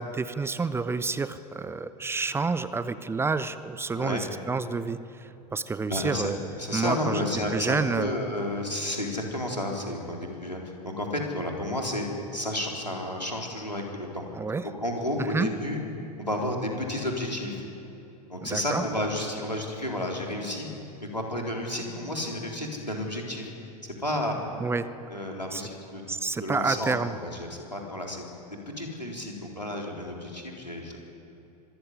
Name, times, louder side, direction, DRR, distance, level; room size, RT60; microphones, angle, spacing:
voice 1, 0.0-6.4 6.7-7.3 7.5-8.1 14.3-14.7 15.2-15.5 18.4-18.9 24.6-24.9 25.5-25.6 26.1-27.2, right 4 dB, 10° right, 14 dB, 0.8 m, -29 dB
voice 2, 5.9-6.3 6.6-12.1 12.3-14.2 14.8-15.8 16.2-17.6 18.3-20.7 21.0-23.5 24.0-24.3 25.1-26.0 26.4-28.3 28.8-31.0, left 1 dB, 90° left, 0 dB, 4.0 m, -31 dB
25.0 x 15.0 x 10.0 m, 3.0 s
figure-of-eight pair, 85°, 21 cm